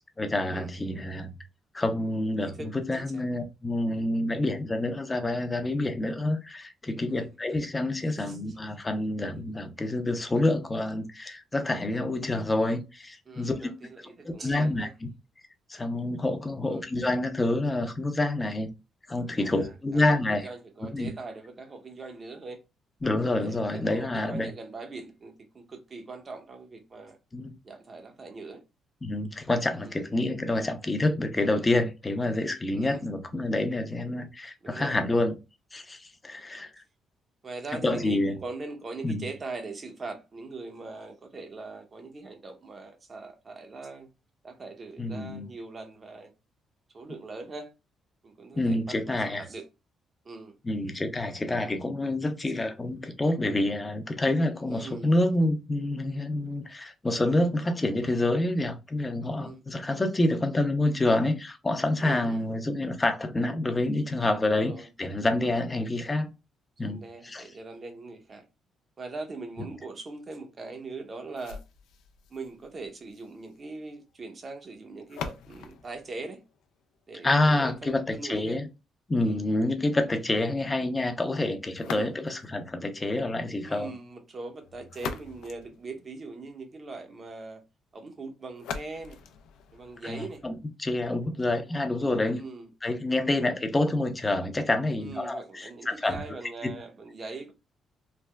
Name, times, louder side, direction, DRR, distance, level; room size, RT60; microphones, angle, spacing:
voice 1, 0.2-1.3 1.7-13.7 14.2-14.9 15.7-18.7 19.1-20.5 20.9-21.1 23.0-24.5 27.3-27.5 29.0-35.3 35.7-36.7 37.8-38.3 39.0-39.2 45.0-45.5 48.5-49.4 50.6-66.3 66.8-67.4 77.2-78.7 79.1-83.9 90.0-90.5 90.8-92.4 92.8-96.2, left 2 dB, 20° left, 0.6 m, -27 dB
voice 2, 8.1-8.6 13.3-14.9 16.6-16.9 19.4-20.0 20.3-22.6 23.3-27.2 27.6-28.6 29.8-30.0 32.7-33.0 34.6-35.0 37.4-44.1 44.4-46.3 46.9-47.7 48.2-49.6 50.2-50.6 52.5-52.6 54.7-55.1 59.4-59.6 62.0-62.4 64.5-64.9 65.5-65.6 66.8-68.4 69.0-71.6 72.3-76.4 77.1-78.6 79.2-79.4 81.9-82.1 83.6-87.6 87.9-89.2 89.7-90.4 92.4-92.7 95.0-97.5, right 3 dB, 40° right, 0.8 m, -41 dB
sound 1, 71.4-77.3 81.7-82.6 84.6-86.5 88.5-90.5, left 6 dB, 85° left, 0.4 m, -42 dB
3.3 x 2.0 x 2.2 m
cardioid pair, 90°, 0 cm